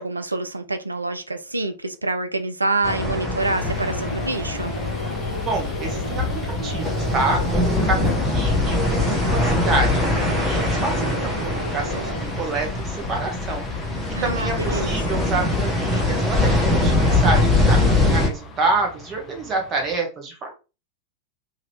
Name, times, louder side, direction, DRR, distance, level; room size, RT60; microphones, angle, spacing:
voice 1, 0.0-4.7 14.2-15.2, right 2 dB, 80° right, 0.3 m, -26 dB
sound 1, 2.7-12.3, equal, 85° left, 0.5 m, -34 dB
sound 2, 2.8-18.3, left 2 dB, ahead, 1.0 m, -22 dB
sound 3, 3.4-20.0, left 5 dB, 30° left, 0.6 m, -37 dB
voice 2, 5.3-10.0 10.4-20.5, right 3 dB, 30° right, 1.2 m, -28 dB
2.8 x 2.7 x 3.2 m
figure-of-eight pair, 90°, 0 cm